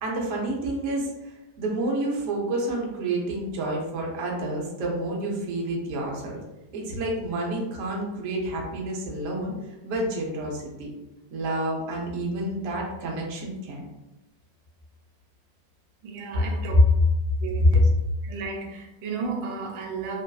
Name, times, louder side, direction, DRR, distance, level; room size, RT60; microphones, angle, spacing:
voice 1, 0.0-6.4 6.7-10.9 11.3-13.8 16.3-16.8 17.6-17.8, equal, 60° right, -2 dB, 0.8 m, -28 dB
voice 2, 16.0-16.8 17.4-17.8 18.2-20.2, right 4 dB, 85° right, 2 dB, 1.3 m, -33 dB
3.1 x 2.4 x 2.3 m, 0.97 s
omnidirectional pair, 2.0 m